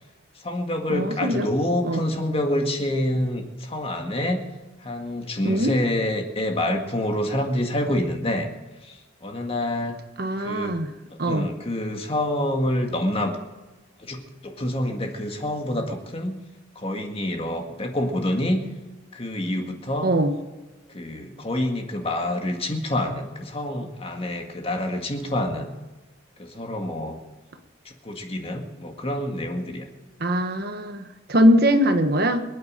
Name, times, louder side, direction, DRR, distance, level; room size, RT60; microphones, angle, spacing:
voice 1, 0.4-4.5 4.8-8.5 8.8-10.0 10.4-10.8 11.1-13.4 14.0-16.4 16.8-18.6 19.1-20.1 20.9-25.7 26.4-27.2 27.9-29.9, left 1 dB, 30° left, 3 dB, 1.9 m, -27 dB
voice 2, 0.9-1.5 1.8-2.0 5.4-5.7 10.2-10.9 11.2-11.5 20.0-20.3 30.2-31.0 31.3-32.4, equal, 50° right, 7 dB, 1.2 m, -21 dB
25.0 x 9.4 x 5.1 m, 1.2 s
head